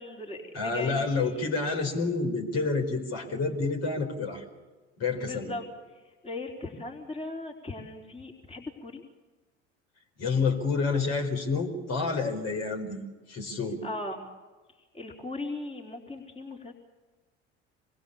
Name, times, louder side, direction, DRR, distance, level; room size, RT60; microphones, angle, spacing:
voice 1, 0.0-1.5 5.2-5.7 5.9-9.0 13.8-14.3 14.8-16.7, left 2 dB, 15° left, 1 dB, 3.9 m, -38 dB
voice 2, 0.5-4.4 5.0-5.5 10.2-13.0 13.3-13.8, left 4 dB, 50° left, 2 dB, 4.8 m, -29 dB
26.5 x 21.0 x 7.2 m, 1.3 s
hypercardioid pair, 65°, 34 cm